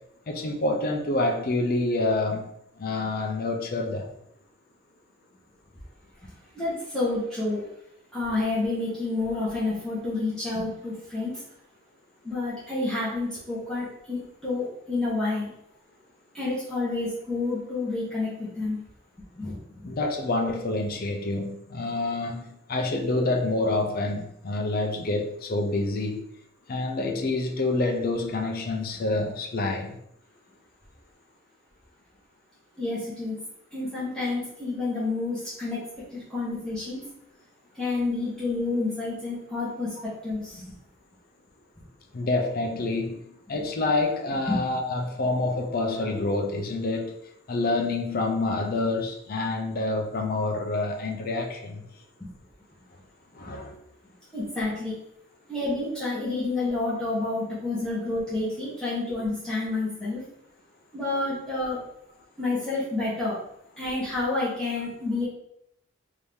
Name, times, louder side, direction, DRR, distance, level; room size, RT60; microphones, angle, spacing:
voice 1, 0.3-2.5 2.8-4.1 19.8-26.2 26.7-30.0 42.1-47.2 47.5-51.8 53.3-53.8, left 2 dB, 45° left, 3 dB, 0.5 m, -27 dB
voice 2, 6.5-7.6 8.1-11.4 12.2-15.5 16.3-18.8 19.3-19.9 32.8-33.3 33.7-35.8 36.1-37.0 37.7-40.7 43.5-43.6 44.5-44.6 52.2-52.3 53.4-53.6 54.3-54.9 55.5-60.2 60.9-61.8 62.4-63.4 63.8-65.2, left 2 dB, 5° left, -11 dB, 1.0 m, -29 dB
3.2 x 2.7 x 3.5 m, 0.75 s
head